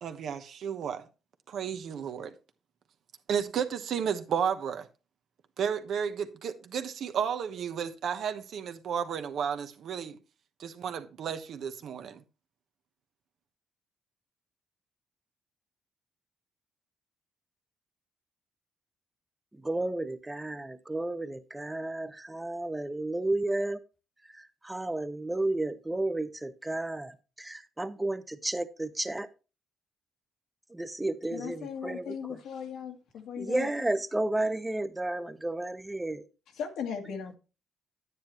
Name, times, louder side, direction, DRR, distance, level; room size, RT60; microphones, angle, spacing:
voice 1, 0.0-1.0 1.5-2.3 3.3-4.9 5.6-10.2 10.6-12.2, right 7 dB, 65° right, 1.0 m, -32 dB
voice 2, 19.6-23.8 24.3-29.3 30.7-32.4 33.4-36.2, right 2 dB, 10° right, 0.9 m, -32 dB
voice 3, 31.3-33.7 36.6-37.3, left 7 dB, 80° left, 1.8 m, -38 dB
9.5 x 9.2 x 3.1 m
cardioid pair, 90°, 0 cm